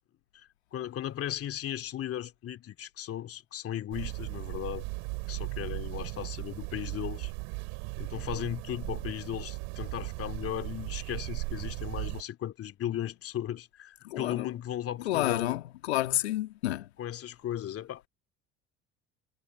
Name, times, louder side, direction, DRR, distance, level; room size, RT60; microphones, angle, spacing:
voice 1, 0.3-4.8 5.3-7.3 8.0-15.6 17.0-18.1, left 11 dB, 45° left, 2.6 m, -36 dB
sound 1, 3.9-12.2, right 38 dB, 70° right, 6.6 m, -37 dB
voice 2, 14.0-14.5 15.1-16.9, left 15 dB, 80° left, 1.9 m, -30 dB
hypercardioid pair, 65°, 32 cm